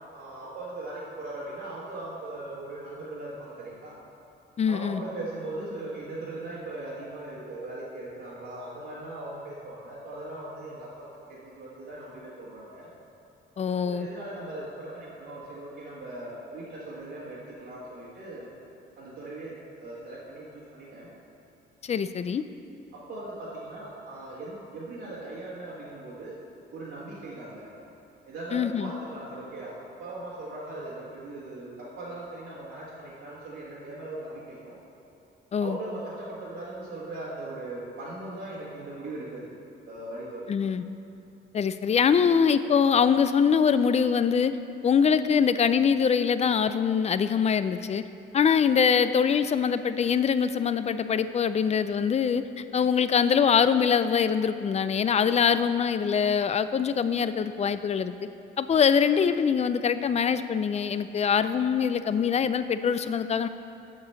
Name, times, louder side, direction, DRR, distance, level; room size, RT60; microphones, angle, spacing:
voice 1, 0.1-4.0 4.7-12.9 13.8-18.5 19.0-21.1 22.9-26.4 26.7-27.7 28.3-34.8 35.6-39.4 39.9-40.5, right 2 dB, 75° right, -10 dB, 1.8 m, -39 dB
voice 2, 4.6-5.0 13.6-14.1 21.8-22.4 28.5-28.9 35.5-35.8 40.5-40.8 41.5-44.5 44.8-48.0 48.3-58.1 58.6-63.5, left 7 dB, 35° left, 12 dB, 0.4 m, -23 dB
8.0 x 5.0 x 6.8 m, 2.8 s
cardioid pair, 90°, 20 cm